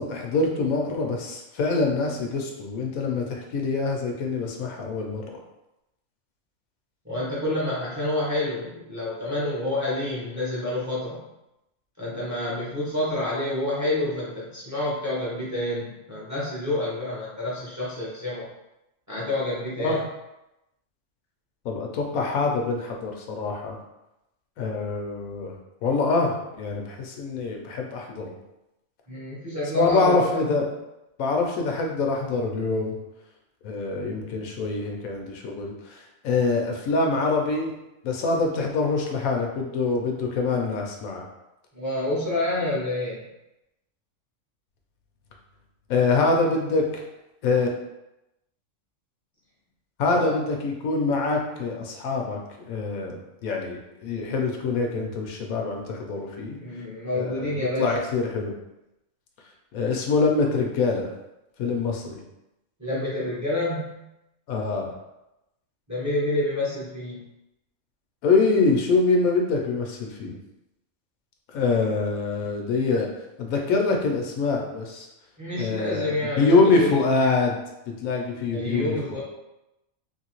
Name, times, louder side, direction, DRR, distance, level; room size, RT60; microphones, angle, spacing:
voice 1, 0.0-5.2 19.8-20.0 21.6-23.8 24.6-25.5 25.8-28.4 29.7-30.7 31.2-33.0 33.6-37.7 38.0-41.2 45.9-47.0 47.4-47.7 50.0-52.4 52.7-56.6 57.1-58.5 59.7-61.1 61.6-62.2 64.5-64.9 68.2-70.4 71.5-73.1 73.4-75.1 75.6-77.6 77.9-79.2, left 3 dB, 85° left, 1 dB, 1.1 m, -25 dB
voice 2, 7.0-11.2 12.0-18.5 19.1-20.0 29.1-30.7 41.7-43.2 50.1-50.4 56.6-57.9 62.8-64.0 65.9-67.3 72.0-72.2 75.4-77.1 78.5-79.2, left 1 dB, 15° right, -7 dB, 0.6 m, -28 dB
3.0 x 2.7 x 2.9 m, 0.91 s
omnidirectional pair, 1.4 m